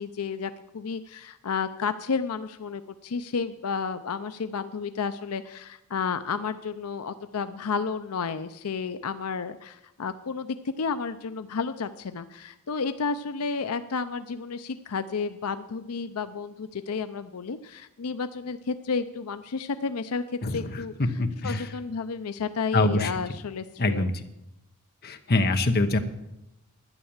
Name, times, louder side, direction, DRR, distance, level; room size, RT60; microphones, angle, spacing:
voice 1, 0.0-24.1, left 5 dB, 80° left, 10 dB, 0.6 m, -32 dB
voice 2, 20.4-20.8 21.2-21.7 22.7-23.1 23.8-24.1 25.0-26.0, left 2 dB, 45° left, 7 dB, 1.1 m, -24 dB
12.0 x 9.9 x 7.2 m, 0.88 s
head